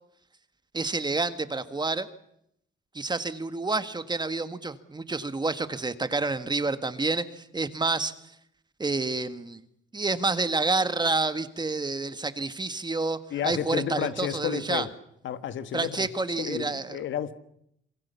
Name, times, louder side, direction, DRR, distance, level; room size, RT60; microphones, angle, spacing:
voice 1, 0.7-2.1 2.9-8.2 8.8-9.6 9.9-13.2 13.4-14.9 15.7-17.0, right 3 dB, 20° right, 1.7 m, -28 dB
voice 2, 13.3-14.9 15.2-16.1 16.4-17.3, left 9 dB, 70° left, 1.6 m, -31 dB
27.5 x 22.5 x 7.1 m
cardioid pair, 90°, 20 cm